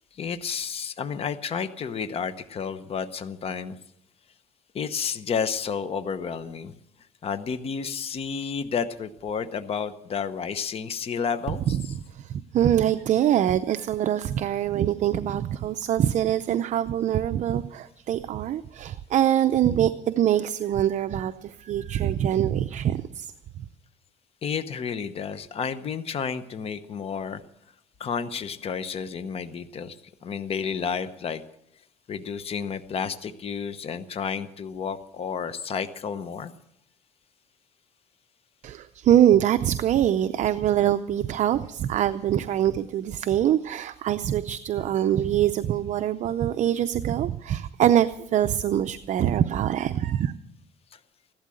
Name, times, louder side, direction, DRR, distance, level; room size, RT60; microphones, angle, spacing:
voice 1, 0.2-3.8 4.7-6.7 7.2-12.0 24.4-27.4 28.0-30.0 30.2-31.4 32.1-36.5, left 6 dB, 35° left, 12 dB, 0.9 m, -31 dB
voice 2, 11.7-23.3 38.6-50.3, right 11 dB, 50° right, 10 dB, 0.6 m, -24 dB
15.5 x 12.0 x 7.7 m, 0.77 s
cardioid pair, 130°, 16 cm